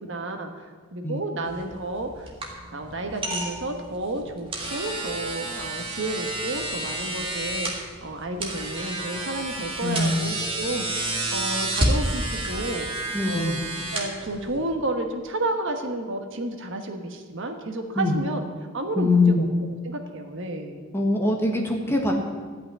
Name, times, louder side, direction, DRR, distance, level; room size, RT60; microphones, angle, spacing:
voice 1, 0.0-2.3 2.7-7.7 8.0-12.9 13.2-13.6 13.9-18.4 18.7-19.5 19.8-20.8, right 2 dB, 60° right, 4 dB, 1.3 m, -31 dB
sound 1, 1.5-14.7, right 1 dB, 25° right, 2.0 m, -30 dB
voice 2, 9.8-10.4 13.1-13.6 17.9-18.2 19.0-19.4 20.9-22.1, left 2 dB, 10° left, 0 dB, 1.5 m, -23 dB
14.5 x 5.9 x 9.8 m, 1.5 s
head